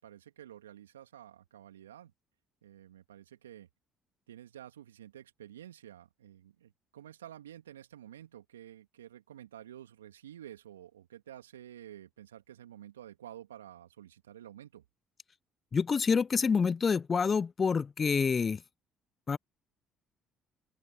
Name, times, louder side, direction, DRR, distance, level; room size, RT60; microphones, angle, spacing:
voice 1, 0.0-2.1 2.6-3.7 4.3-14.8, right 11 dB, 85° right, 2.8 m, -50 dB
voice 2, 15.7-18.6 19.3-19.4, left 5 dB, 35° left, 0.6 m, -27 dB
open air
figure-of-eight pair, 50°, 0 cm